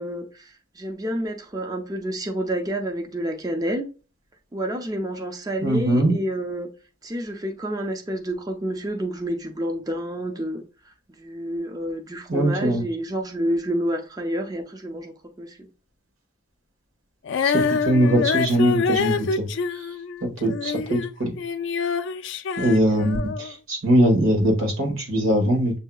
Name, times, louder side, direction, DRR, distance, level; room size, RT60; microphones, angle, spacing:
voice 1, 0.0-3.9 4.5-6.7 7.0-10.6 11.1-15.7, right 1 dB, 20° right, 0.5 m, -29 dB
voice 2, 5.6-6.1 12.3-12.8 17.4-19.9 20.2-21.3 22.6-25.8, right 1 dB, 85° right, 1.4 m, -21 dB
Female singing, 17.3-21.1 21.4-23.5, left 5 dB, 60° left, 0.3 m, -26 dB
7.2 x 2.7 x 2.2 m
head